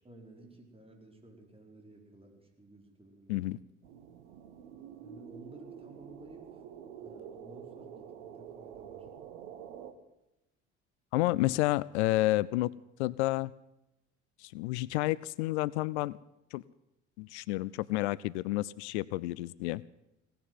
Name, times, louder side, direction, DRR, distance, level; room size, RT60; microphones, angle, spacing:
voice 1, 0.0-3.4 5.0-6.6 7.0-9.1, right 1 dB, 15° right, 3 dB, 4.7 m, -54 dB
sound 1, 3.8-9.9, right 8 dB, 75° right, 1.3 m, -48 dB
voice 2, 11.1-12.7 13.0-13.5 14.4-16.2 16.5-16.6 17.2-19.8, left 18 dB, 70° left, 21 dB, 0.5 m, -30 dB
17.5 x 10.5 x 7.8 m, 0.90 s
figure-of-eight pair, 55°, 35 cm